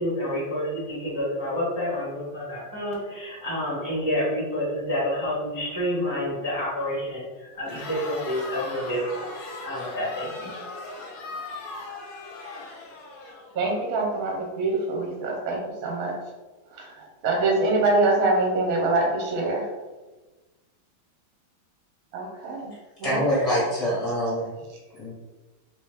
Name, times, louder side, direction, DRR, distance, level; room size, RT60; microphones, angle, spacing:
voice 1, 0.0-10.6, equal, 25° right, -7 dB, 0.4 m, -29 dB
Crowd, 7.6-13.8, left 3 dB, 65° left, 1.0 m, -38 dB
voice 2, 13.5-16.1 16.7-19.7 22.1-22.7 23.0-23.2, right 2 dB, 60° right, -2 dB, 1.0 m, -25 dB
voice 3, 23.0-24.5 24.9-25.1, equal, 35° left, -7 dB, 0.6 m, -25 dB
3.1 x 3.0 x 3.3 m, 1.2 s
omnidirectional pair, 2.3 m